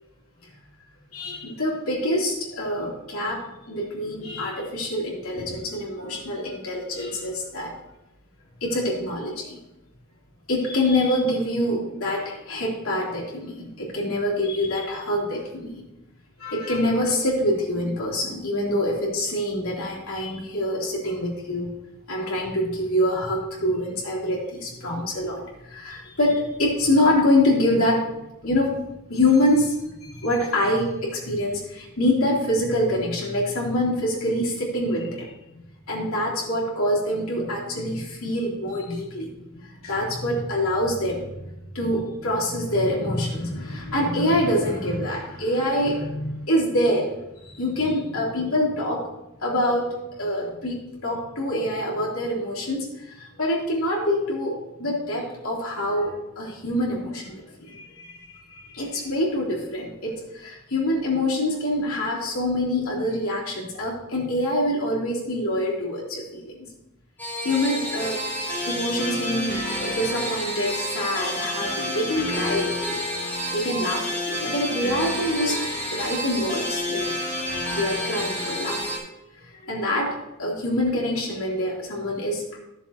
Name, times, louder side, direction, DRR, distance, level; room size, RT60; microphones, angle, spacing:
voice 1, 1.1-7.7 8.6-9.6 10.5-15.8 16.4-21.7 22.1-28.1 28.4-28.8 29.1-29.7 30.0-35.3 35.9-39.3 39.8-41.3 41.7-49.0 49.4-49.9 50.2-58.2 58.7-66.5 67.4-68.2 68.6-73.0 73.4-75.6 75.9-78.8 79.4-82.6, left 1 dB, 80° left, -4 dB, 3.0 m, -25 dB
sound 1, 67.2-79.0, left 1 dB, 10° left, 2.9 m, -29 dB
13.5 x 7.0 x 2.9 m, 0.93 s
head